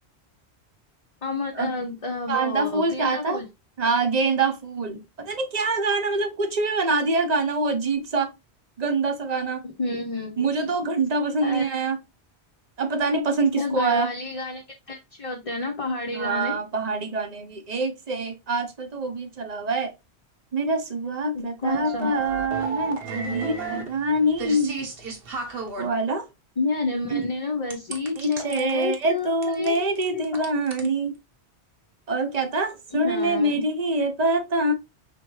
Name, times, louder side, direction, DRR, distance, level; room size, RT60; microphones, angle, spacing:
voice 1, 1.2-3.5 4.9-5.0 9.6-10.5 11.4-11.8 13.6-16.6 21.3-22.1 26.6-30.5 30.8-30.9 32.9-33.6, left 3 dB, 35° left, 0.7 m, -30 dB
voice 2, 2.3-3.4 3.8-8.3 8.8-9.6 10.4-12.0 12.8-14.1 16.1-19.9 20.5-24.8 25.8-26.3 27.1-27.2 28.1-31.1 32.1-34.7, right 2 dB, 40° right, 0.8 m, -25 dB
sound 1, 21.7-25.9 27.7-28.9 29.4-30.9, right 4 dB, 60° right, 1.2 m, -33 dB
5.2 x 3.4 x 3.0 m
omnidirectional pair, 1.1 m